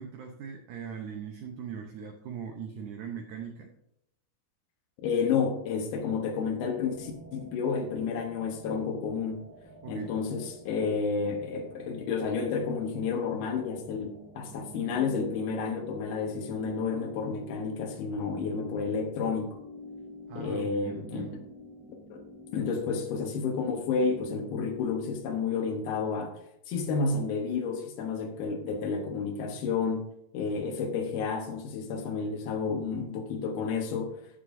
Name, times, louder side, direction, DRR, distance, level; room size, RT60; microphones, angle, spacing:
voice 1, 0.0-3.7 9.8-10.1 20.3-21.4, right 7 dB, 80° right, 1.8 m, -40 dB
voice 2, 5.0-9.4 9.9-19.6 20.4-21.4 22.1-22.2 22.5-26.4 26.7-30.1 30.3-34.2, left 5 dB, 75° left, 2.8 m, -31 dB
sound 1, 6.9-25.1, left 1 dB, 5° right, 2.9 m, -48 dB
14.0 x 6.7 x 2.6 m
omnidirectional pair, 4.7 m